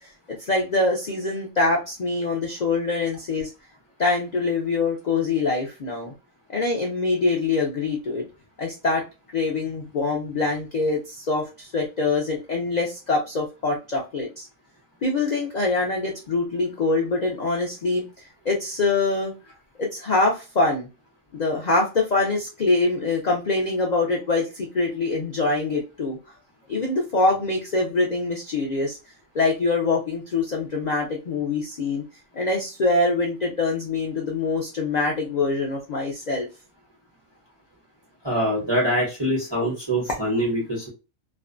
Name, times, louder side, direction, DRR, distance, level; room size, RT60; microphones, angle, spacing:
voice 1, 0.5-3.5 4.0-6.1 6.5-8.2 8.6-9.0 9.3-14.5 15.0-18.0 18.5-19.3 19.8-20.9 21.3-26.2 26.7-29.0 29.3-32.0 32.3-36.5, left 3 dB, 85° left, 0 dB, 0.3 m, -24 dB
voice 2, 38.2-40.9, equal, 25° right, -5 dB, 0.8 m, -24 dB
2.5 x 2.2 x 2.4 m, 0.28 s
omnidirectional pair, 1.4 m